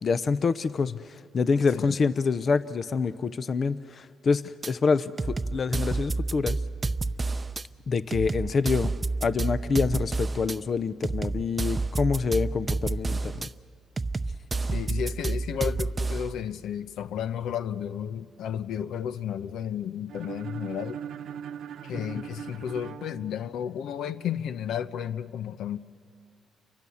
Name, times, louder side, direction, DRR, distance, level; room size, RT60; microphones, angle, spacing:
voice 1, 0.0-6.6 7.9-8.9 9.2-13.5, left 5 dB, 45° left, 0.7 m, -26 dB
sound 1, 4.6-4.7 5.2-7.6 8.1-10.6 11.0-13.5 14.0-16.3, right 3 dB, 25° right, 0.6 m, -29 dB
voice 2, 14.7-21.0 21.8-25.8, left 9 dB, 80° left, 0.8 m, -33 dB
sound 2, 20.1-24.0, right 8 dB, 70° right, 0.9 m, -40 dB
29.0 x 24.0 x 7.1 m
cardioid pair, 90°, 0 cm